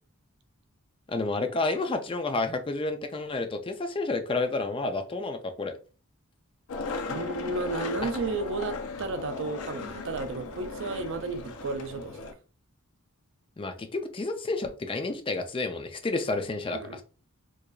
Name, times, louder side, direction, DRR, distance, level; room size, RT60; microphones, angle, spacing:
voice 1, 1.1-5.8 13.6-17.0, left 3 dB, 25° left, 0.4 m, -30 dB
Skateboard, 6.7-12.3, left 4 dB, 85° left, 0.6 m, -36 dB
voice 2, 7.1-12.3 16.7-17.0, right 3 dB, 60° right, 0.4 m, -33 dB
4.6 x 2.5 x 2.3 m
head